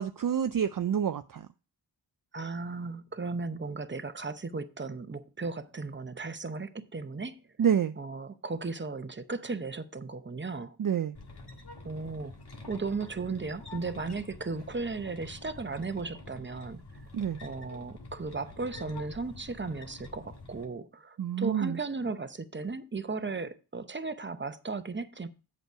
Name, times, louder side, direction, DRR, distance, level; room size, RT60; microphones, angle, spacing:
voice 1, 0.0-1.5 7.6-8.0 10.8-11.2 17.1-17.4 21.2-21.8, right 8 dB, 55° right, 0.4 m, -28 dB
voice 2, 2.3-7.4 8.0-10.8 11.8-12.3 12.7-16.8 17.4-25.3, right 3 dB, 25° right, 0.8 m, -36 dB
sound 1, 11.1-20.6, left 3 dB, 65° left, 1.7 m, -47 dB
8.1 x 6.5 x 4.5 m
wide cardioid pair, 65°, 42 cm